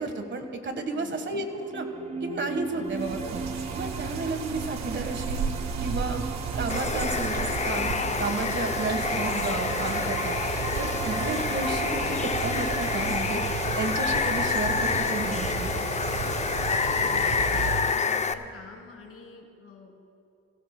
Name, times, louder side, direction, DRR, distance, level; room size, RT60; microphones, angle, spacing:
voice 1, 0.0-1.9 2.2-3.4 3.7-5.4 5.8-6.2 6.6-10.4 10.8-13.4 13.7-15.7, right 3 dB, 40° right, 7 dB, 1.5 m, -32 dB
voice 2, 0.9-1.3 2.7-3.1 16.9-20.0, left 4 dB, 50° left, 0 dB, 3.0 m, -47 dB
sound 1, 1.0-17.0, right 4 dB, 20° right, 0.6 m, -38 dB
sound 2, 2.9-18.0, right 6 dB, 60° right, 1.0 m, -33 dB
Water, 6.7-18.3, left 5 dB, 25° left, 0.5 m, -28 dB
23.0 x 16.0 x 2.2 m, 2.5 s
cardioid pair, 90°, 30 cm